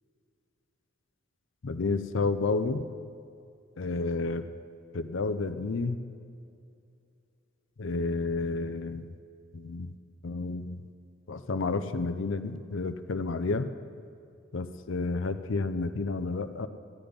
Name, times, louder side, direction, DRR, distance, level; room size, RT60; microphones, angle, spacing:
voice 1, 1.6-2.9 3.8-4.5 4.9-6.0 7.8-9.1 9.5-9.9 10.2-10.8 11.3-13.7 14.5-16.7, left 3 dB, 65° left, 10 dB, 0.5 m, -30 dB
13.5 x 9.7 x 5.2 m, 2.4 s
head